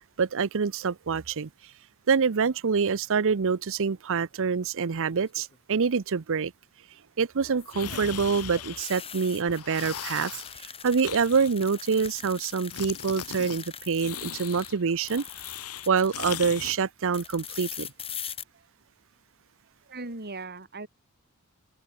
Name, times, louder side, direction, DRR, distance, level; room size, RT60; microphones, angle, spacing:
voice 1, 0.2-1.5 2.1-6.5 7.2-10.3 10.8-15.2 15.9-17.9, right 5 dB, 60° right, 0.6 m, -26 dB
sound 1, 5.1-5.6 7.4-14.7 15.0-16.7 17.1-18.4, left 8 dB, 25° left, 3.2 m, -42 dB
sound 2, 7.7-9.1 9.4-10.6 11.0-12.4 12.7-13.6 14.0-16.8, left 8 dB, 85° left, 1.8 m, -39 dB
voice 2, 19.9-20.9, right 3 dB, 45° right, 3.7 m, -39 dB
head